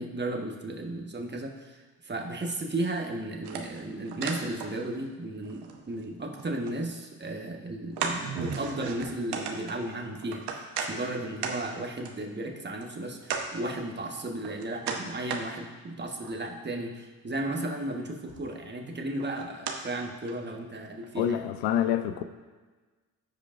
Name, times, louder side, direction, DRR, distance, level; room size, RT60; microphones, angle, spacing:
voice 1, 0.0-21.5, right 1 dB, 25° right, 2 dB, 1.3 m, -34 dB
sound 1, 3.4-5.1 5.3-6.8 7.3-7.4 8.0-10.9 11.4-11.6 12.1-12.2 12.8-12.9 13.3-13.5 14.0-15.4 16.0-16.4 17.8-17.9 18.3-18.7 19.2-19.8 20.3-20.4 21.0-21.1, right 6 dB, 70° right, 1.0 m, -36 dB
voice 2, 21.2-22.2, left 10 dB, 80° left, 10 dB, 0.7 m, -27 dB
14.5 x 5.0 x 2.6 m, 1.3 s
supercardioid pair, 60°, 42 cm